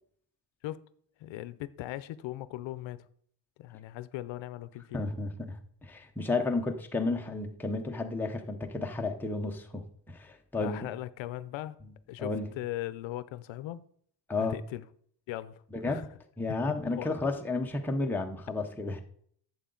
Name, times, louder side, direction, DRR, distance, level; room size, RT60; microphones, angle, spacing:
voice 1, 1.2-3.1 3.6-5.0 10.5-11.8 12.1-13.9 14.4-14.8 15.3-16.1 16.9-17.2, left 15 dB, 75° left, 0.6 m, -39 dB
voice 2, 4.9-10.9 12.2-12.5 14.3-14.6 15.7-16.0 16.4-19.0, left 3 dB, 5° left, 0.6 m, -32 dB
11.5 x 7.8 x 3.8 m
cardioid pair, 165°, 46 cm